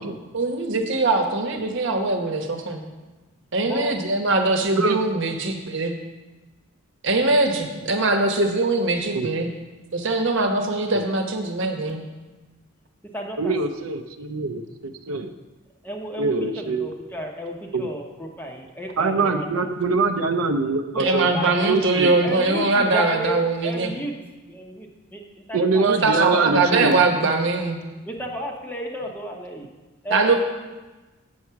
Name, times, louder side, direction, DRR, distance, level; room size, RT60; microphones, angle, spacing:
voice 1, 0.3-2.8 3.5-6.0 7.0-9.5 9.9-12.0 21.0-23.9 25.8-27.8 30.1-30.3, right 3 dB, 60° right, 4 dB, 1.1 m, -22 dB
voice 2, 3.6-4.0 13.1-13.6 15.8-19.7 20.9-21.7 22.2-24.1 24.5-26.6 28.0-29.7 30.0-30.3, equal, 10° left, 1 dB, 0.9 m, -33 dB
voice 3, 13.4-15.3 16.2-16.9 17.7-17.9 19.0-21.3 21.7-22.1 25.5-27.0, right 3 dB, 90° right, 7 dB, 0.6 m, -24 dB
8.2 x 6.3 x 5.7 m, 1.2 s
head